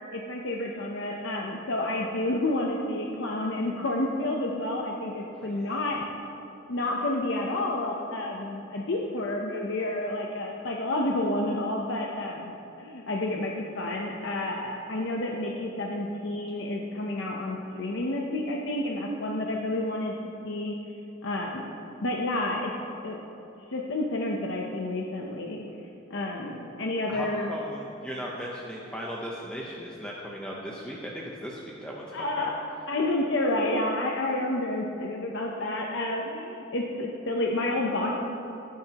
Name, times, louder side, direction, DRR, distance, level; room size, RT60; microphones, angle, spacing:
voice 1, 0.1-6.0 6.7-20.1 20.4-20.7 21.2-21.7 22.0-22.7 23.0-23.2 23.7-25.6 26.1-27.5 32.1-32.5 32.9-38.2, left 1 dB, 65° left, -1 dB, 0.8 m, -30 dB
voice 2, 5.4-5.7 27.1-32.5, equal, 5° left, -4 dB, 0.9 m, -37 dB
16.5 x 10.5 x 3.0 m, 2.8 s
head